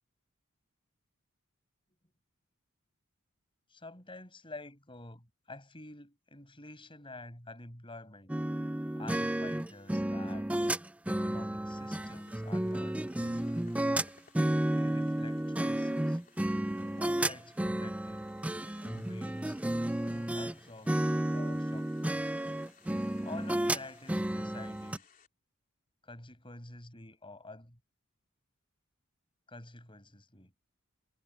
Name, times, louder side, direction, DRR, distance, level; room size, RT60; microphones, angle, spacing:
voice 1, 3.7-8.3 8.9-10.5 11.0-13.7 14.7-16.2 17.0-18.3 18.8-19.6 20.1-22.3 23.2-25.1 26.0-27.8 29.5-30.5, left 2 dB, 25° left, 6.5 m, -49 dB
sound 1, 8.3-20.5 20.9-25.0, right 1 dB, 5° right, 0.4 m, -32 dB
sound 2, 11.7-25.3, left 5 dB, 40° left, 3.3 m, -63 dB
head